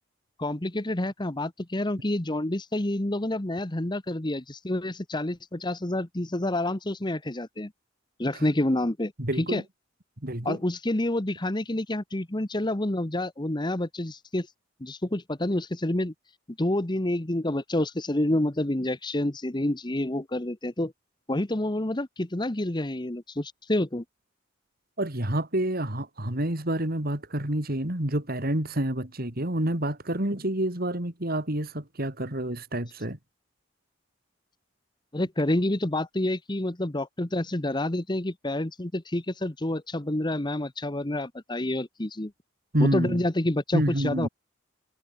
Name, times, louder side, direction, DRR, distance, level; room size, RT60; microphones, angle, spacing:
voice 1, 0.4-7.7 8.2-9.1 9.4-9.6 10.4-14.5 14.8-16.1 16.6-20.9 21.3-24.0 35.1-42.3 42.8-44.3, left 1 dB, 25° left, 1.2 m, -28 dB
voice 2, 9.2-9.6 10.2-10.6 25.0-33.2 42.7-43.2 43.7-44.3, right 1 dB, 50° right, 3.4 m, -28 dB
head